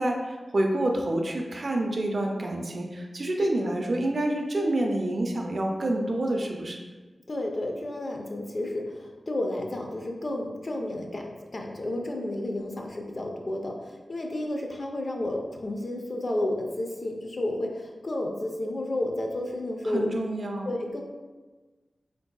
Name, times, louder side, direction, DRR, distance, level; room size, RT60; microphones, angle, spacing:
voice 1, 0.0-6.8 19.9-20.8, right 1 dB, 55° right, 2 dB, 0.4 m, -28 dB
voice 2, 7.3-20.1 20.6-21.0, left 1 dB, 50° left, 2 dB, 0.4 m, -31 dB
3.8 x 2.6 x 2.2 m, 1.3 s
wide cardioid pair, 80°, 0 cm